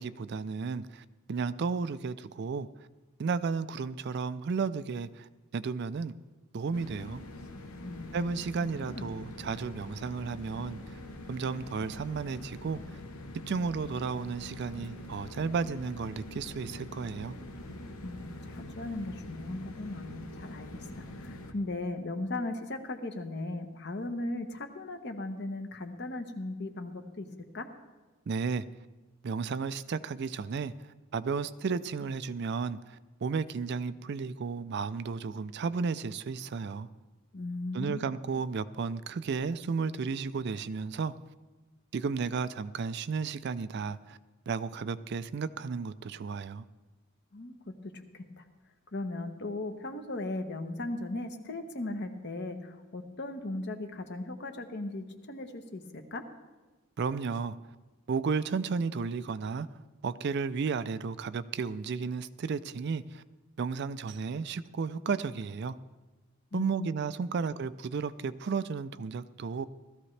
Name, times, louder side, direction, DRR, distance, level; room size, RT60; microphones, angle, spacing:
voice 1, 0.0-2.7 3.2-6.1 6.5-7.2 8.1-11.0 11.3-13.0 13.5-17.4 28.3-28.7 29.2-36.9 37.7-41.1 41.9-44.2 44.5-46.6 57.0-57.6 58.1-59.7 60.0-63.2 63.6-65.8 66.5-69.7, right 5 dB, 50° right, 14 dB, 0.4 m, -33 dB
sound 1, 6.7-21.5, left 1 dB, 80° left, 1.0 m, -44 dB
voice 2, 7.8-8.4 8.9-9.1 18.0-27.3 27.5-27.7 37.3-38.0 47.3-47.6 47.8-48.4 48.9-56.2 66.5-66.9, left 2 dB, 50° left, 6 dB, 1.0 m, -37 dB
16.5 x 13.5 x 3.3 m, 1.2 s
head